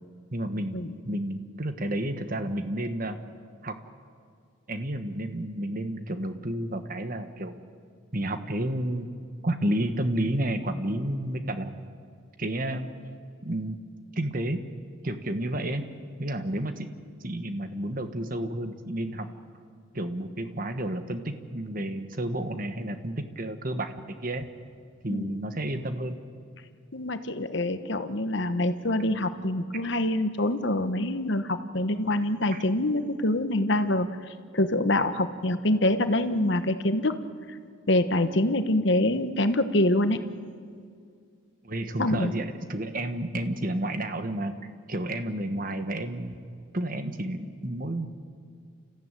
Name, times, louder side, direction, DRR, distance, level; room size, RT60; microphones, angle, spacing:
voice 1, 0.3-0.8 1.0-3.2 3.6-3.7 4.7-7.5 8.1-9.1 9.4-11.8 12.4-12.9 13.4-13.8 14.1-14.6 15.0-15.8 16.2-16.9 17.2-19.3 19.9-23.9 24.2-24.4 25.0-26.2 32.5-32.6 41.6-44.5 44.9-46.4 46.7-48.1, right 1 dB, 40° right, 9 dB, 1.4 m, -31 dB
voice 2, 26.9-34.1 34.5-37.2 37.9-40.2 42.0-42.3, left 1 dB, 55° left, 10 dB, 1.2 m, -25 dB
29.5 x 14.5 x 9.1 m, 2.2 s
head